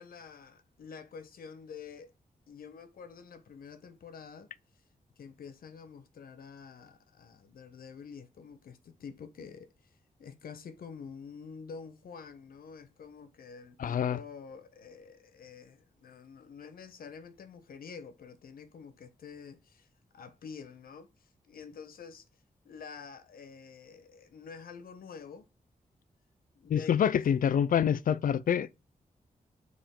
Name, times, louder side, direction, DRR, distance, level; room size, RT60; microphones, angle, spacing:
voice 1, 0.0-2.1 2.5-4.5 5.2-19.9 20.1-22.2 22.6-25.5 26.6-27.0, left 6 dB, 85° left, 1.1 m, -48 dB
voice 2, 13.8-14.2 26.7-28.7, left 8 dB, 70° left, 0.5 m, -26 dB
6.9 x 4.9 x 3.7 m
wide cardioid pair, 100°, 15 cm